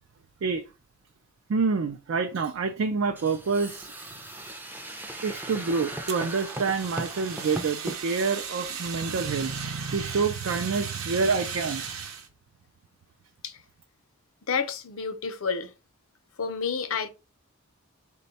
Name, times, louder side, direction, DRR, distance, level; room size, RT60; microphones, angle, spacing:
voice 1, 1.5-3.9 5.2-11.9, right 4 dB, 65° right, 0.4 m, -27 dB
sound 1, 3.2-8.0, right 1 dB, 10° right, 0.5 m, -38 dB
Fire, 6.1-12.3, right 6 dB, 85° right, 0.8 m, -37 dB
voice 2, 14.5-15.7 16.4-17.1, left 5 dB, 70° left, 0.6 m, -30 dB
4.2 x 2.2 x 4.0 m
head